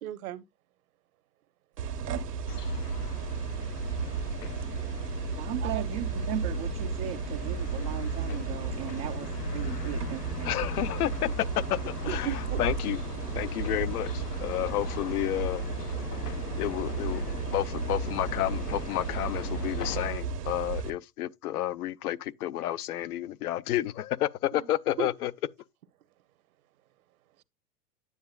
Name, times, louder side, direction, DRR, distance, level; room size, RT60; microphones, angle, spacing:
voice 1, 0.0-0.4 5.6-5.8 12.1-12.6 24.5-24.7 25.0-25.1, right 12 dB, 65° right, 1.0 m, -36 dB
sound 1, 1.8-20.9, right 5 dB, 85° right, 1.4 m, -34 dB
sound 2, 2.5-20.1, left 6 dB, 90° left, 1.1 m, -40 dB
voice 2, 5.3-10.5, right 12 dB, 20° right, 0.3 m, -37 dB
voice 3, 10.4-13.0 13.3-15.6 16.6-17.2 17.5-25.3, left 13 dB, 70° left, 0.7 m, -31 dB
9.6 x 7.6 x 2.3 m
hypercardioid pair, 120°, 46 cm